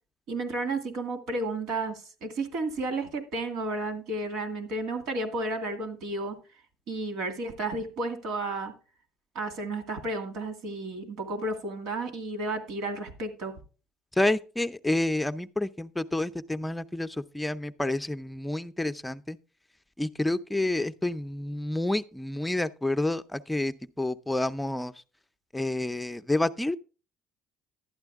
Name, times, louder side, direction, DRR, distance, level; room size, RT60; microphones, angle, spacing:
voice 1, 0.3-6.4 6.9-8.7 9.3-13.5, right 2 dB, 80° right, 2.3 m, -32 dB
voice 2, 14.2-19.4 20.0-24.9 25.5-26.8, left 1 dB, 10° left, 0.5 m, -29 dB
12.0 x 8.8 x 3.5 m
supercardioid pair, 90°, 0 cm